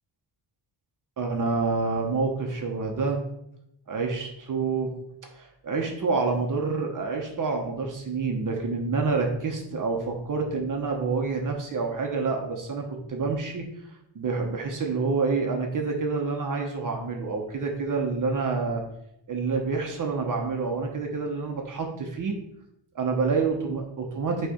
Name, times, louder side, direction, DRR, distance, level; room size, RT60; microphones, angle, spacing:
voice 1, 1.2-3.2 3.9-4.9 5.4-13.7 14.1-18.8 19.3-22.4 22.9-24.5, right 4 dB, 45° right, 2 dB, 1.0 m, -28 dB
8.3 x 3.3 x 5.0 m, 0.78 s
wide cardioid pair, 175°, 46 cm